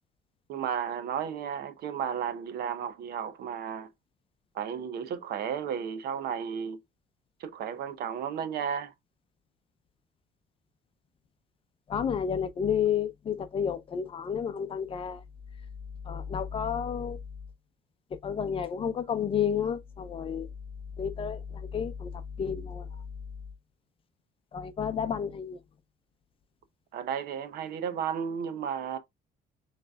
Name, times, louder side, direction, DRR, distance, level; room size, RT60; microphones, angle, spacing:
voice 1, 0.5-3.9 4.5-6.8 7.4-8.9 26.9-29.0, right 8 dB, 70° right, 0.9 m, -33 dB
voice 2, 11.9-15.2 16.1-17.2 18.2-20.5 21.0-22.1 22.4-22.9 24.5-25.6, left 7 dB, 35° left, 0.6 m, -31 dB
6.5 x 3.2 x 2.3 m
cardioid pair, 155°, 17 cm